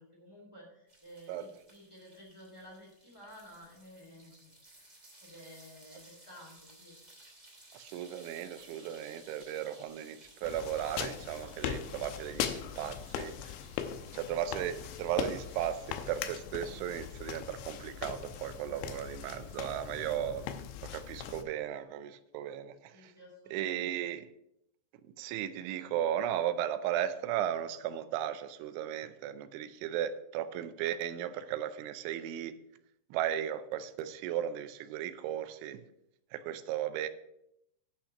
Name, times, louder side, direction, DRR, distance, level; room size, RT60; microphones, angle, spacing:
voice 1, 0.0-7.0 22.9-24.1, equal, 10° left, 1.4 m, -53 dB
sound 1, 0.9-18.8, right 1 dB, 15° right, 1.7 m, -59 dB
voice 2, 7.7-13.3 14.1-20.5 20.8-23.1 23.5-24.3 25.2-32.5 33.1-35.8 36.3-37.1, right 10 dB, 90° right, 3.1 m, -36 dB
sound 2, 10.4-21.4, left 9 dB, 90° left, 3.1 m, -40 dB
10.0 x 5.8 x 6.5 m
omnidirectional pair, 5.3 m